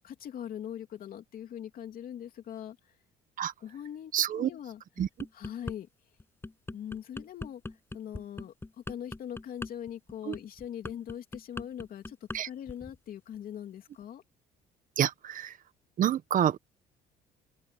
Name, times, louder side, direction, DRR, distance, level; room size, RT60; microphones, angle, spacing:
voice 1, 0.0-2.9 3.6-4.8 5.3-5.9 6.7-7.6 7.9-8.5 8.9-12.2 12.4-14.2, left 10 dB, 60° left, 2.9 m, -41 dB
voice 2, 4.1-4.5 5.0-5.1 10.2-10.3 12.3-12.5 15.0-15.6 16.0-16.6, right 10 dB, 50° right, 1.3 m, -27 dB
sound 1, 5.0-5.8 6.2-12.4 12.7-13.0, left 2 dB, 15° left, 6.9 m, -40 dB
open air
cardioid pair, 110°, 17 cm